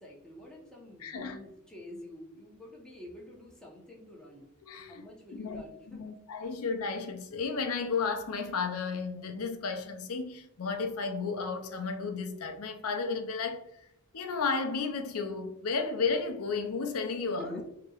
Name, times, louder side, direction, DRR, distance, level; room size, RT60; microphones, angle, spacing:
voice 1, 0.0-4.5 4.9-6.1 17.4-17.7, left 1 dB, 5° left, 0.9 m, -47 dB
voice 2, 1.0-1.4 4.6-5.0 5.3-5.6 5.9-13.9 14.1-17.6, left 4 dB, 75° left, 0.5 m, -33 dB
5.4 x 3.0 x 2.4 m
head